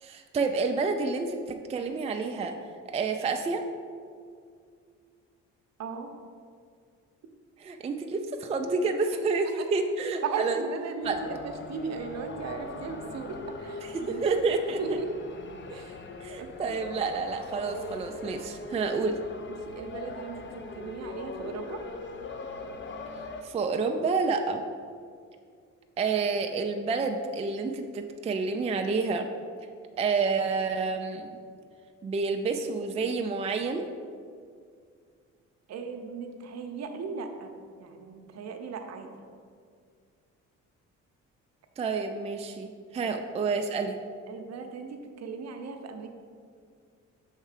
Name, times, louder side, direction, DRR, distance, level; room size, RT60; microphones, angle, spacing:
voice 1, 0.0-2.5 2.9-3.6 7.6-10.6 11.0-11.2 13.9-14.8 16.2-19.2 23.4-24.6 26.0-29.3 30.0-31.4 32.0-33.8 41.8-44.0, right 4 dB, 20° right, 5 dB, 0.3 m, -29 dB
voice 2, 5.8-6.1 10.2-14.2 14.8-15.3 15.7-16.0 16.4-16.8 19.7-21.8 35.7-37.5 37.8-39.1 43.0-43.2 44.3-46.1, right 5 dB, 60° right, 5 dB, 0.7 m, -37 dB
sound 1, 11.0-23.4, left 3 dB, 40° left, 0.5 m, -41 dB
5.6 x 3.6 x 4.9 m, 2.2 s
cardioid pair, 90°, 30 cm